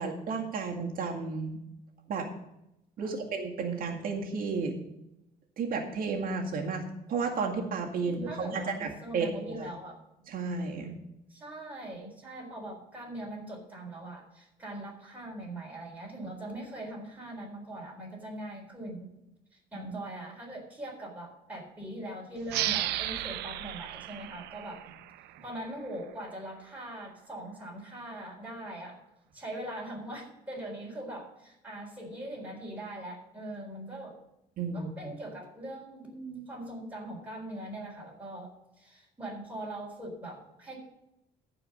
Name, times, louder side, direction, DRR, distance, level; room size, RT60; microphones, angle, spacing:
voice 1, 0.0-1.6 2.1-2.3 3.0-4.7 5.6-6.8 7.1-9.3 9.6-9.7 10.3-10.9 19.8-19.9 34.6-35.1, right 4 dB, 60° right, 1 dB, 2.0 m, -32 dB
voice 2, 8.0-10.0 11.3-19.1 19.7-24.8 25.4-29.0 29.3-34.2 34.7-40.8, right 1 dB, 10° right, -2 dB, 4.0 m, -41 dB
sound 1, 22.5-25.7, right 14 dB, 80° right, 0.5 m, -34 dB
14.5 x 4.9 x 6.4 m, 0.87 s
cardioid pair, 110°, 17 cm